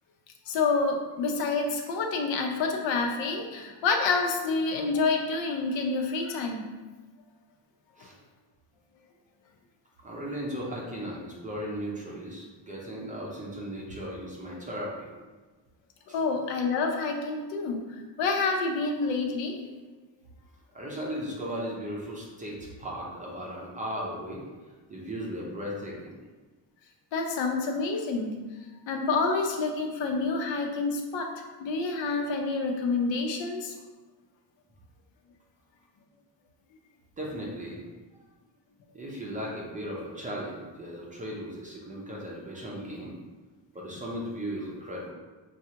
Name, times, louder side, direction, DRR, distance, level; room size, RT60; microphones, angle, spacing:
voice 1, 0.5-6.6 16.1-17.8 18.2-19.6 27.1-28.3 28.9-31.3 31.6-33.7, left 4 dB, 80° left, 2 dB, 0.7 m, -28 dB
voice 2, 10.0-15.1 16.1-16.2 20.7-24.5 24.9-26.1 37.2-37.9 38.9-43.1 43.7-45.1, equal, 20° right, -3 dB, 0.5 m, -36 dB
6.0 x 2.4 x 2.8 m, 1.3 s
cardioid pair, 180°, 44 cm